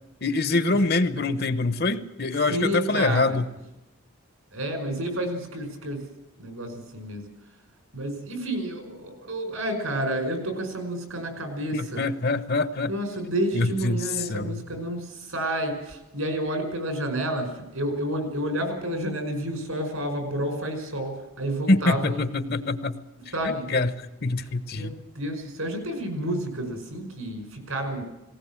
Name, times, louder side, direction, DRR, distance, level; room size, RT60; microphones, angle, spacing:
voice 1, 0.2-3.5 11.7-12.9 13.5-14.6 21.7-23.0 23.4-23.9 24.2-24.9, left 2 dB, 45° left, 13 dB, 0.9 m, -25 dB
voice 2, 2.5-3.4 4.5-6.1 6.4-7.2 7.9-12.0 12.9-22.2 23.3-23.7 24.4-28.0, right 1 dB, 75° right, 6 dB, 5.5 m, -30 dB
19.0 x 19.0 x 7.5 m, 0.99 s
head